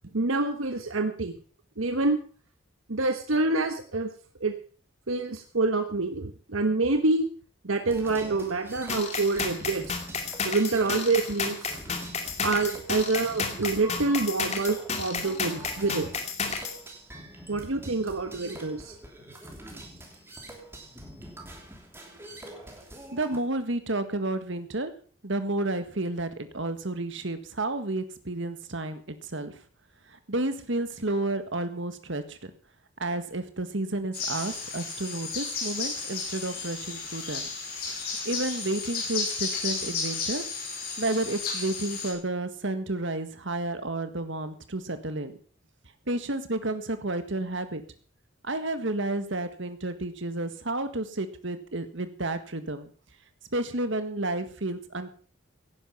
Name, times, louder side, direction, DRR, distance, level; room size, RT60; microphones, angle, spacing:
voice 1, 0.1-1.3 1.8-2.2 2.9-4.1 4.4-4.5 5.1-7.3 7.6-10.0 10.4-11.7 12.4-16.1 17.5-18.9, right 3 dB, 80° right, 7 dB, 1.2 m, -27 dB
sound 1, 7.9-23.4, right 1 dB, 10° right, 3.0 m, -45 dB
sound 2, 8.9-16.8, left 4 dB, 30° left, 2.4 m, -32 dB
voice 2, 22.2-22.6 23.1-24.9 25.2-29.6 30.1-32.5 33.0-37.5 38.3-40.4 40.7-45.4 46.1-47.8 48.4-52.9 53.5-55.1, right 2 dB, 65° right, 10 dB, 1.7 m, -31 dB
sound 3, 34.1-42.1, left 4 dB, 50° left, 5.8 m, -33 dB
17.0 x 10.0 x 5.7 m, 0.43 s
head